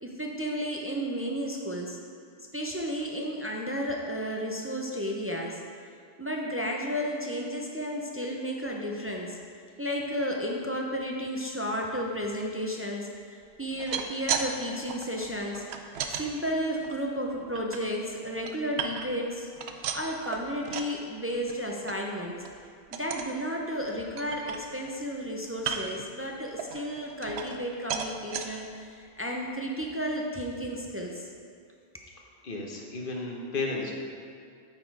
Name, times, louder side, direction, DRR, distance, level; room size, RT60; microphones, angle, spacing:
voice 1, 0.0-2.0 2.5-5.6 6.2-9.4 9.8-15.6 16.1-19.5 19.9-22.4 22.9-31.3, equal, 20° right, 0 dB, 0.4 m, -33 dB
sound 1, 13.6-14.5 14.8-16.2 16.8-17.8 18.2-19.3 19.6-21.0 21.3-21.6 21.9-22.0 22.4-22.6 22.9-23.3 23.8-23.9 24.2-25.0 25.6-26.0 26.6-27.6 27.9-28.5 29.1-29.2 29.5-29.6, right 7 dB, 90° right, 0.8 m, -35 dB
voice 2, 32.4-33.9, left 3 dB, 55° left, -1 dB, 1.1 m, -33 dB
8.8 x 4.1 x 4.7 m, 2.3 s
omnidirectional pair, 1.1 m